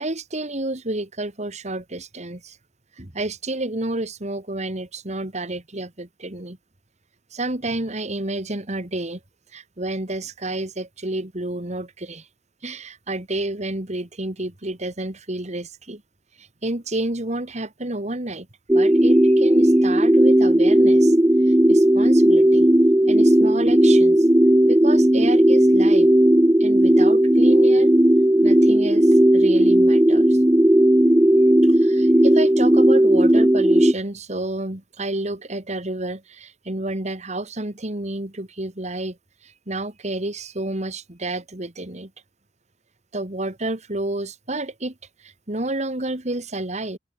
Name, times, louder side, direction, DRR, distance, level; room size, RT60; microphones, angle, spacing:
voice 1, 0.0-2.6 2.9-6.6 7.3-9.2 9.5-12.3 12.6-16.0 16.3-18.5 18.7-22.7 23.1-24.3 24.7-26.1 26.6-27.9 28.4-30.4 31.6-42.1 43.1-47.0, right 2 dB, 40° right, 2.5 m, -30 dB
sound 1, 18.7-33.9, right 1 dB, 15° right, 0.8 m, -15 dB
open air
head